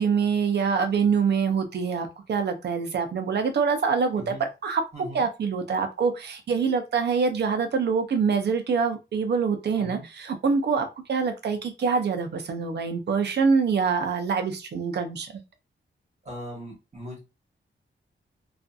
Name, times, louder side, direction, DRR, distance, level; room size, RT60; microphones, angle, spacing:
voice 1, 0.0-4.8 5.1-15.4, right 5 dB, 60° right, 0.5 m, -25 dB
voice 2, 4.2-4.5 4.9-5.3 9.8-10.1 16.2-17.2, left 1 dB, 35° right, 1.0 m, -39 dB
2.5 x 2.4 x 2.3 m
wide cardioid pair, 180°, 20 cm